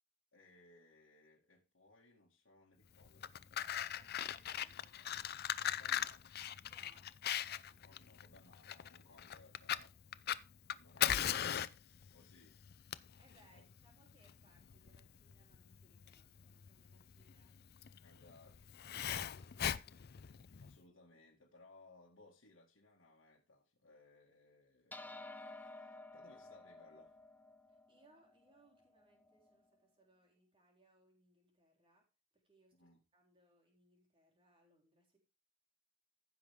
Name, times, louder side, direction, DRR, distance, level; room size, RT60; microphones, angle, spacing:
voice 1, 0.3-4.1 5.6-6.3 7.7-10.0 10.7-11.6 12.1-12.6 13.5-13.7 18.0-19.8 20.6-27.2 32.7-33.0, left 2 dB, 75° left, 2.1 m, -65 dB
Fire, 3.0-20.8, left 10 dB, 50° left, 0.5 m, -40 dB
voice 2, 3.6-5.1 6.6-7.1 13.2-17.6 27.7-32.1 32.3-35.2, right 1 dB, 25° right, 4.0 m, -71 dB
sound 1, 24.9-29.6, left 2 dB, 10° left, 0.7 m, -53 dB
15.0 x 6.3 x 3.6 m
head